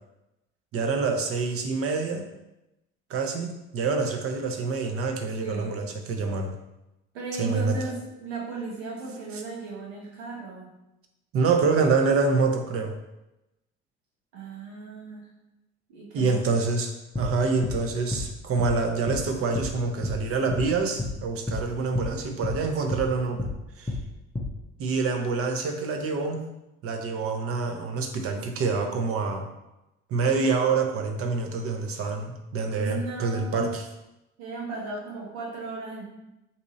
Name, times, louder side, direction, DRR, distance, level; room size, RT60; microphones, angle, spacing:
voice 1, 0.7-2.3 3.1-6.5 7.4-7.8 11.3-13.0 16.1-23.5 23.8-24.0 24.8-26.4 26.8-29.5 30.1-33.9, right 4 dB, 45° right, 4 dB, 0.7 m, -26 dB
voice 2, 5.4-5.7 7.1-10.7 14.3-15.3 15.9-16.4 32.7-33.7 34.4-36.0, right 3 dB, 75° right, -4 dB, 1.2 m, -36 dB
sound 1, 17.1-17.3 17.6-17.8 18.1-18.3 18.6-18.8 19.1-19.2 19.6-19.7 20.0-20.2 20.5-20.7 21.0-21.2 21.5-21.6 21.9-22.1 22.4-22.6 22.9-23.1 23.4-23.6 23.9-24.0 24.4-24.5, left 2 dB, 10° left, 0.5 m, -30 dB
2.7 x 2.7 x 4.0 m, 0.94 s
hypercardioid pair, 60°, 33 cm